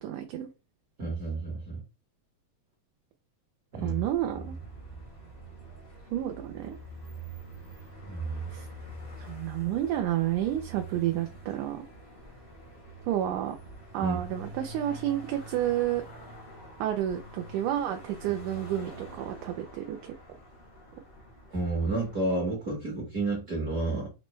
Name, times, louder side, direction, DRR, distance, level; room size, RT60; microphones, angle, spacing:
voice 1, 0.0-0.5 3.8-4.5 6.1-6.8 8.5-8.7 9.2-11.9 13.1-13.6 13.9-16.0 16.8-20.1, right 12 dB, 80° right, 1.9 m, -30 dB
voice 2, 1.0-1.8 3.7-4.0 8.1-8.5 14.0-14.2 21.5-24.1, right 2 dB, 55° right, 1.0 m, -30 dB
sound 1, 3.7-22.4, right 2 dB, 55° left, 0.6 m, -46 dB
5.9 x 2.1 x 3.1 m
omnidirectional pair, 3.7 m